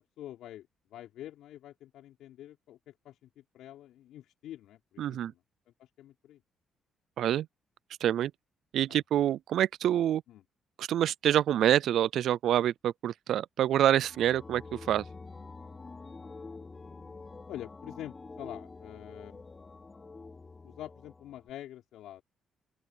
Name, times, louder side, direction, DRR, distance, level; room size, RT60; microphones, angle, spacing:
voice 1, 0.0-5.4 5.8-6.4 8.9-9.0 10.3-10.4 17.5-19.4 20.6-22.2, left 12 dB, 85° left, 5.5 m, -46 dB
voice 2, 5.0-5.3 7.2-7.5 8.0-8.3 8.7-10.2 10.8-15.0, right 11 dB, 75° right, 0.3 m, -26 dB
sound 1, 14.0-21.5, left 3 dB, 25° left, 3.1 m, -47 dB
open air
cardioid pair, 90°, 0 cm